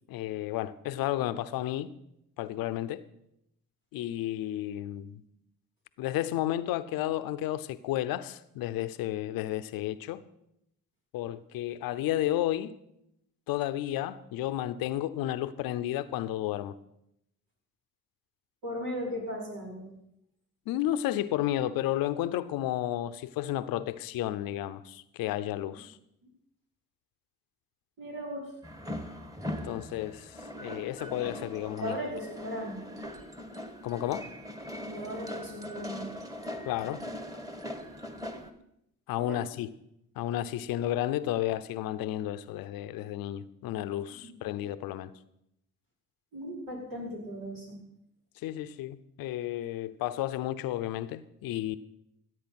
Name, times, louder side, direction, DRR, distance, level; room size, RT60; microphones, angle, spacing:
voice 1, 0.1-1.9 2.4-3.0 3.9-5.2 6.0-10.2 11.1-12.7 13.5-16.7 20.7-26.0 29.6-32.0 33.8-34.2 36.6-37.0 39.1-39.7 40.2-45.1 48.4-51.8, left 13 dB, 85° left, 0.7 m, -32 dB
voice 2, 18.6-19.9 28.0-28.5 31.8-32.8 34.9-36.1 39.2-39.4 44.4-44.5 46.3-47.8, equal, 75° right, 5.2 m, -37 dB
sound 1, 28.6-38.5, left 1 dB, 10° right, 1.8 m, -40 dB
15.5 x 8.2 x 5.9 m
supercardioid pair, 50°, 35 cm